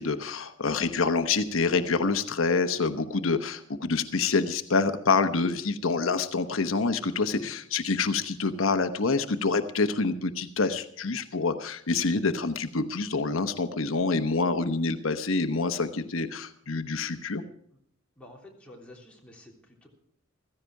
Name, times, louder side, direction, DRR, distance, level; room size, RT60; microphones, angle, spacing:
voice 1, 0.0-17.4, left 4 dB, 90° left, 8 dB, 1.0 m, -27 dB
voice 2, 18.2-19.9, left 1 dB, 5° left, -3 dB, 3.4 m, -50 dB
15.5 x 14.5 x 4.7 m, 0.64 s
head